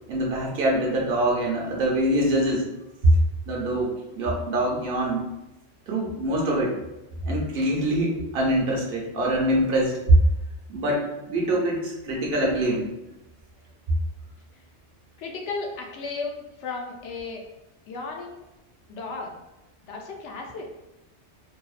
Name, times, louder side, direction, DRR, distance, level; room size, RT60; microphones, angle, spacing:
voice 1, 0.1-2.7 3.5-5.2 5.9-6.8 7.3-10.0 10.7-12.9, right 1 dB, 65° right, -2 dB, 0.7 m, -25 dB
voice 2, 15.2-17.4 17.9-18.4 18.9-19.3 19.8-20.7, left 4 dB, 90° left, 1 dB, 0.9 m, -34 dB
2.6 x 2.1 x 2.3 m, 0.96 s
omnidirectional pair, 1.1 m